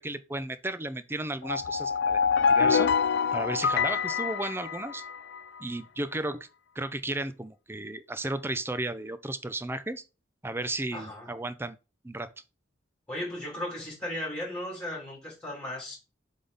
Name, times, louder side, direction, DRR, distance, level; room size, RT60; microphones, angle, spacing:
voice 1, 0.0-2.2 2.5-2.9 3.3-5.0 5.6-6.4 6.8-10.0 10.4-11.8 12.0-12.3, right 2 dB, 10° right, 0.5 m, -34 dB
sound 1, 1.4-5.4, left 6 dB, 60° left, 0.3 m, -26 dB
voice 2, 10.9-11.3 13.1-16.0, left 1 dB, 5° left, 2.8 m, -36 dB
7.5 x 3.6 x 4.0 m
head